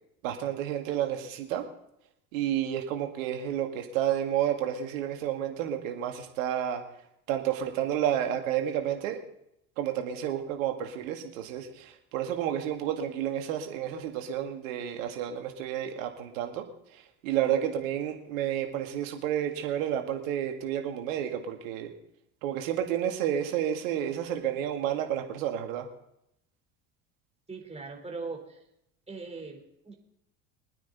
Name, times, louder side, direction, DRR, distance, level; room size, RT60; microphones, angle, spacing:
voice 1, 0.2-1.7 2.3-6.8 7.3-9.2 9.8-16.7 16.9-21.9 22.4-25.9, right 10 dB, 70° right, 4 dB, 2.3 m, -30 dB
voice 2, 27.5-28.6 29.1-29.9, right 4 dB, 15° right, 2 dB, 3.9 m, -40 dB
23.5 x 9.6 x 4.1 m, 0.78 s
hypercardioid pair, 70°, 41 cm